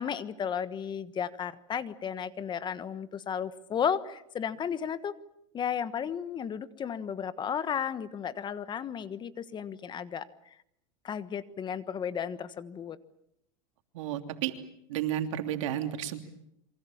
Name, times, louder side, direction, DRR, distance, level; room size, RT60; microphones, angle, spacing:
voice 1, 0.0-5.1 5.5-10.3 11.0-13.0, left 8 dB, 30° left, 14 dB, 1.4 m, -34 dB
voice 2, 13.9-14.5 14.9-16.2, right 11 dB, 75° right, 6 dB, 3.1 m, -32 dB
28.0 x 24.0 x 7.3 m, 0.77 s
supercardioid pair, 115°, 16 cm